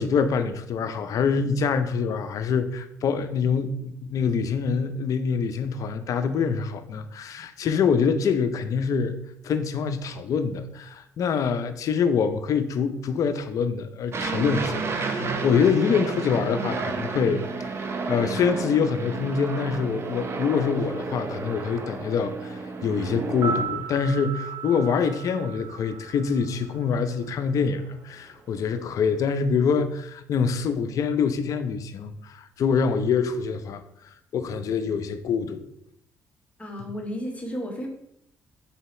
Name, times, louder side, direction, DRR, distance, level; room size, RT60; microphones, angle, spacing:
voice 1, 0.0-9.1 9.4-33.8 34.3-35.6, left 6 dB, 60° left, 10 dB, 0.4 m, -25 dB
Aircraft, 14.1-23.6, right 4 dB, 40° right, 0.5 m, -31 dB
sound 1, 23.3-27.4 27.7-27.8, right 5 dB, 60° right, 1.1 m, -35 dB
voice 2, 36.6-37.9, equal, 20° left, 1 dB, 1.0 m, -33 dB
3.8 x 2.8 x 4.2 m, 0.76 s
cardioid pair, 85°, 7 cm